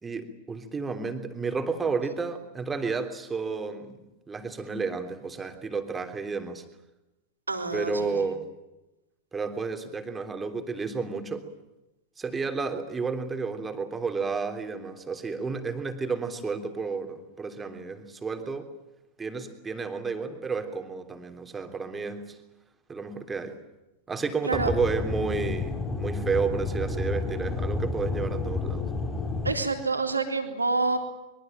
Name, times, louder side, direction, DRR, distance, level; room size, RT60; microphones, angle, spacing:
voice 1, 0.0-6.6 7.7-8.4 9.3-11.5 12.2-18.7 19.2-22.4 22.9-23.5 24.1-28.9, right 4 dB, 15° right, 6 dB, 3.3 m, -31 dB
voice 2, 7.5-8.1 24.4-24.7 29.4-31.0, right 3 dB, 80° right, 5 dB, 3.6 m, -27 dB
Aircraft / Engine, 24.5-29.5, left 3 dB, 10° left, 5.4 m, -30 dB
24.0 x 23.5 x 9.0 m, 0.96 s
figure-of-eight pair, 90°, 0 cm